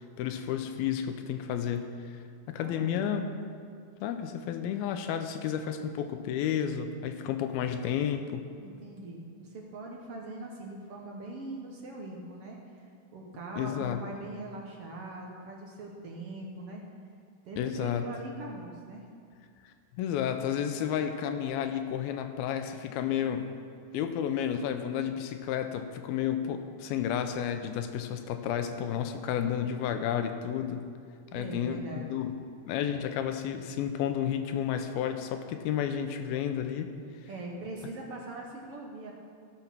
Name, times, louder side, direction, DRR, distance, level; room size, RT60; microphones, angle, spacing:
voice 1, 0.0-1.9 2.5-3.2 4.0-8.5 13.6-14.0 17.6-18.0 19.6-23.5 23.9-30.8 31.3-31.8 32.1-32.3 32.7-36.9, left 9 dB, 85° left, 7 dB, 2.6 m, -31 dB
voice 2, 2.5-3.2 8.6-12.9 13.1-16.8 17.4-19.0 31.3-32.0 37.3-39.1, right 2 dB, 65° right, -1 dB, 1.5 m, -41 dB
16.0 x 7.2 x 6.0 m, 2.3 s
omnidirectional pair, 4.3 m